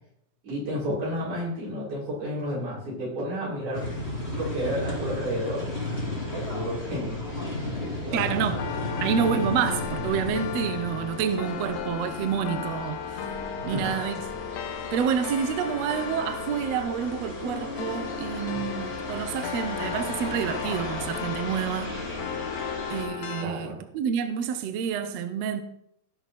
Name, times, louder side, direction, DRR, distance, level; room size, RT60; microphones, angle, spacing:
voice 1, 0.4-3.9 4.2-5.7 6.3-7.2 7.8-8.7 13.7-14.0 18.5-18.7 23.4-23.8, equal, 60° right, 7.1 m, -32 dB
sound 1, 3.7-23.1, left 1 dB, 20° left, 3.7 m, -35 dB
voice 2, 8.1-8.6 9.0-13.3 13.6-14.3 14.9-21.9 22.9-25.6, right 7 dB, 75° right, 1.6 m, -28 dB
sound 2, 8.5-23.5, left 8 dB, 85° left, 2.6 m, -36 dB
Bass guitar, 17.4-21.3, left 6 dB, 70° left, 2.5 m, -45 dB
17.5 x 6.0 x 4.3 m
omnidirectional pair, 4.0 m